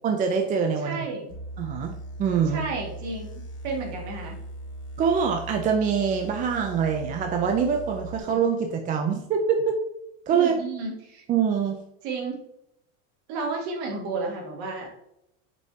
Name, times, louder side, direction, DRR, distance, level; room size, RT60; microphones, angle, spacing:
voice 1, 0.0-1.0 1.6-2.6 5.0-9.8 10.3-10.5 11.3-11.8, right 6 dB, 25° right, 4 dB, 0.5 m, -24 dB
voice 2, 0.8-1.3 2.5-3.3 3.6-4.3 8.2-8.3 10.3-11.2 12.0-12.4 13.3-15.0, right 3 dB, 55° right, 0 dB, 2.1 m, -32 dB
sound 1, 1.3-8.2, right 1 dB, 35° left, 1.5 m, -39 dB
6.2 x 5.3 x 2.8 m, 0.81 s
cardioid pair, 160°, 34 cm